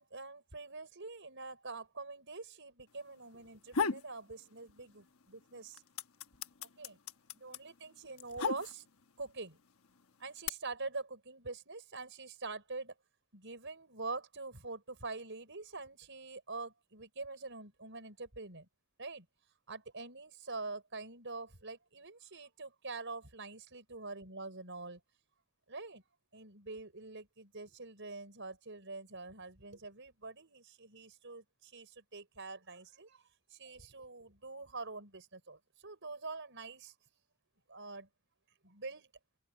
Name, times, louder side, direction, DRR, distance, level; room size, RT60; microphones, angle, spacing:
voice 1, 0.0-5.8 6.6-7.0 7.3-8.8 9.2-9.6 10.2-12.9 13.3-18.7 19.0-19.3 19.7-25.0 25.7-26.0 26.3-36.9 37.7-38.1 38.6-39.1, right 3 dB, 55° right, 6.2 m, -45 dB
sound 1, 3.4-4.1 4.5-5.2 5.5-9.1 9.8-10.5, left 5 dB, 70° left, 1.1 m, -36 dB
open air
head